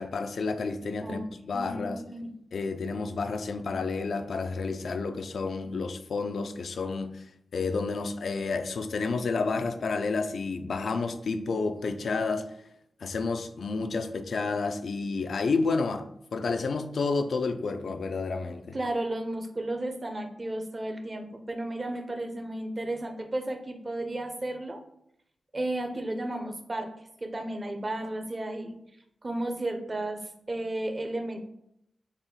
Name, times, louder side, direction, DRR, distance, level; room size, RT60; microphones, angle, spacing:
voice 1, 0.0-2.0 2.5-7.2 7.5-12.4 13.0-18.8, left 4 dB, 80° left, 8 dB, 0.3 m, -30 dB
voice 2, 1.5-2.3 18.7-24.8 25.5-26.9 27.2-28.7 29.2-31.4, right 1 dB, 40° right, 5 dB, 0.6 m, -33 dB
4.1 x 2.1 x 3.7 m, 0.75 s
cardioid pair, 50°, 0 cm